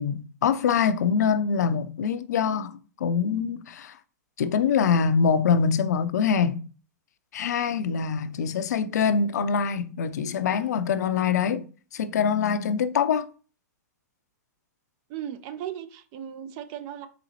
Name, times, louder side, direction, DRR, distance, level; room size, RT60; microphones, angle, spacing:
voice 1, 0.0-4.0 4.4-6.6 7.3-11.6 11.9-13.3, left 6 dB, 70° left, 0.5 m, -24 dB
voice 2, 15.1-17.1, right 10 dB, 40° right, 0.5 m, -36 dB
4.0 x 3.8 x 2.9 m
hypercardioid pair, 120°, 9 cm